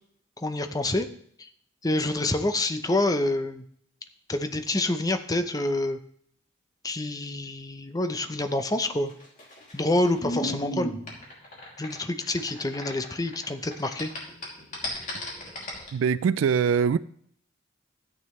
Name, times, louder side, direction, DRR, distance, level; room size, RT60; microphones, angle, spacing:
voice 1, 0.4-1.1 1.4-1.5 1.8-3.6 4.3-6.0 6.8-9.1 9.7-10.9 11.8-14.1, left 2 dB, 20° left, 0.6 m, -27 dB
Plane Take-off, 9.1-13.4 13.7-15.9, equal, 40° left, 2.8 m, -34 dB
voice 2, 15.9-17.0, right 6 dB, 85° right, 0.3 m, -22 dB
13.5 x 8.9 x 3.2 m
head